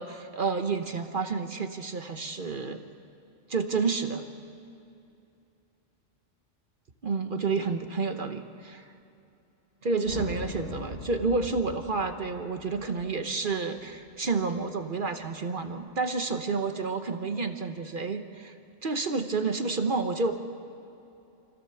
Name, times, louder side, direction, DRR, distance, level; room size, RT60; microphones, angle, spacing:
voice 1, 0.0-2.8 3.5-4.2 7.0-8.9 9.8-18.5 18.8-20.3, right 4 dB, 45° right, 7 dB, 1.0 m, -30 dB
sound 1, 10.0-14.4, left 2 dB, 75° left, 1.9 m, -42 dB
25.5 x 15.5 x 6.8 m, 2.8 s
omnidirectional pair, 1.3 m